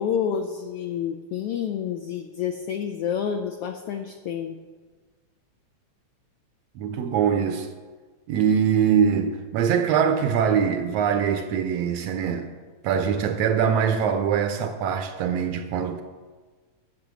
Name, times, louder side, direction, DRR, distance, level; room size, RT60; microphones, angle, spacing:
voice 1, 0.0-4.6, left 8 dB, 85° left, 1.3 m, -29 dB
voice 2, 6.8-7.7 8.3-12.5 12.8-16.0, right 7 dB, 75° right, 1.6 m, -23 dB
10.5 x 7.6 x 6.1 m
omnidirectional pair, 3.3 m